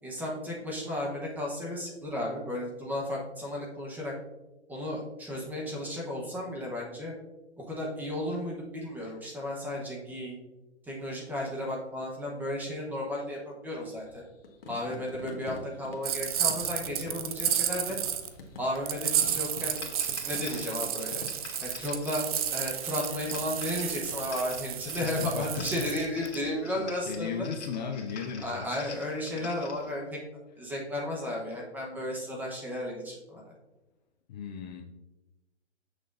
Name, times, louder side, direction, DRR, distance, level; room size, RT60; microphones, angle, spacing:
voice 1, 0.0-4.1 4.7-7.1 7.6-10.3 10.8-14.2 14.7-18.0 18.6-19.8 20.2-21.2 21.6-22.2 22.5-27.5 28.4-30.2 30.6-33.5, left 1 dB, 5° right, -3 dB, 0.8 m, -34 dB
sound 1, 13.7-25.6, left 2 dB, 55° left, 1.1 m, -49 dB
sound 2, 16.0-18.3 18.9-26.3, right 9 dB, 35° right, 0.4 m, -32 dB
sound 3, 19.6-29.9, left 5 dB, 75° left, 1.4 m, -47 dB
voice 2, 25.0-25.9 26.2-26.3 26.8-28.7 29.3-29.7 34.3-34.8, left 6 dB, 40° left, 4 dB, 0.5 m, -37 dB
6.7 x 6.2 x 2.5 m, 1.0 s
hypercardioid pair, 140°, 34 cm